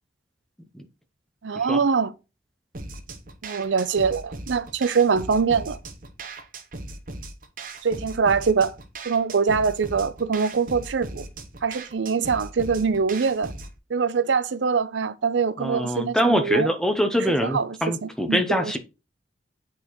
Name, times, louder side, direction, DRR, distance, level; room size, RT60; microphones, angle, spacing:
voice 1, 1.4-2.1 3.4-5.8 7.8-8.7 9.1-11.3 11.6-13.5 13.9-16.7 17.4-17.8 18.0-18.7, right 5 dB, 85° right, 0.5 m, -23 dB
sound 1, 2.7-13.8, right 2 dB, 50° right, 0.8 m, -38 dB
voice 2, 15.6-18.8, equal, 5° left, 0.6 m, -24 dB
8.5 x 4.0 x 3.0 m
head